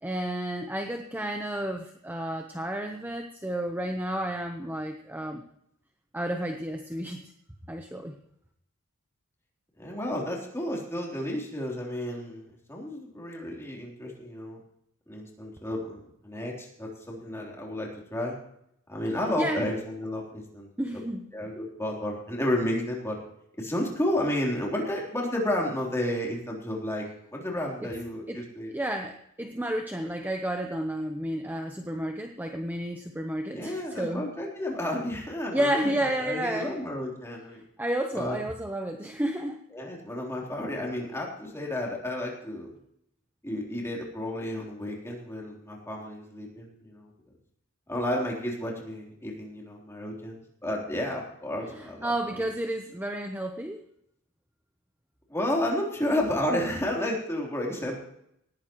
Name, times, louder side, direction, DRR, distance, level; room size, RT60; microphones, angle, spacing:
voice 1, 0.0-5.4 6.1-7.2 7.7-8.2 19.4-19.7 20.8-21.2 27.8-27.9 28.3-28.4 28.7-34.2 35.5-36.8 37.8-39.6 51.8-53.8, right 1 dB, 10° right, 4 dB, 0.9 m, -31 dB
voice 2, 9.8-14.6 15.1-18.4 18.9-20.7 21.3-23.2 23.6-28.7 33.5-37.6 38.1-38.4 39.7-42.7 43.4-47.1 47.9-52.5 55.3-58.0, left 1 dB, 10° left, -2 dB, 3.5 m, -32 dB
19.5 x 15.5 x 3.1 m, 0.74 s
head